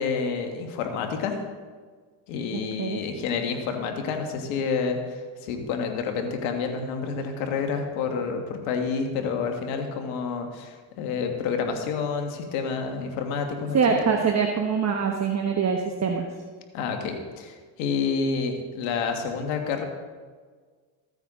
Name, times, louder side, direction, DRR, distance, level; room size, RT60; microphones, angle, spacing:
voice 1, 0.0-1.4 2.3-14.0 16.7-19.8, left 5 dB, 85° left, 4 dB, 1.7 m, -29 dB
voice 2, 2.5-3.0 13.7-16.3, right 6 dB, 35° right, 2 dB, 1.2 m, -24 dB
14.5 x 9.1 x 3.7 m, 1.5 s
supercardioid pair, 80°, 47 cm